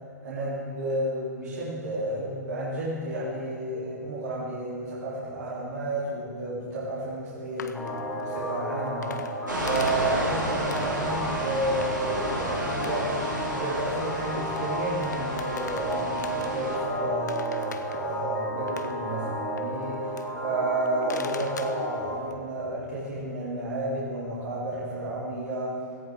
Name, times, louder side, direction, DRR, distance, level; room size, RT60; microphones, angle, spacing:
voice 1, 0.2-13.2 13.5-25.8, right 2 dB, 60° right, -7 dB, 3.1 m, -31 dB
sound 1, 7.5-11.1 11.8-12.3 12.5-14.7 15.0-16.9 17.3-20.4 20.8-22.3, left 6 dB, 65° left, 0.9 m, -43 dB
sound 2, 7.7-22.2, equal, 5° left, 2.2 m, -33 dB
sound 3, 9.5-16.8, right 1 dB, 90° right, 3.3 m, -32 dB
17.0 x 15.0 x 3.6 m, 2.4 s
figure-of-eight pair, 115°, 10 cm